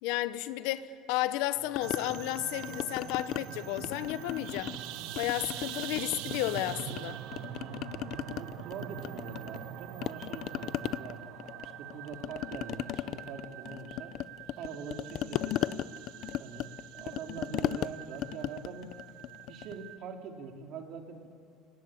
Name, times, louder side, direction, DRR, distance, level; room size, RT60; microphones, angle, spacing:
voice 1, 0.0-4.7 5.2-7.2, left 15 dB, 70° left, 1.0 m, -33 dB
sound 1, 1.8-3.4 3.8-4.8 5.2-7.0 7.3-9.7 10.0-19.8, left 13 dB, 45° left, 0.5 m, -37 dB
sound 2, 1.8-20.0, right 13 dB, 65° right, 1.1 m, -44 dB
voice 2, 5.2-5.8 7.5-7.9 8.3-14.1 14.6-15.8 16.4-18.9 19.5-21.3, right 6 dB, 45° right, 2.7 m, -44 dB
29.5 x 19.0 x 8.8 m
cardioid pair, 170°, 0 cm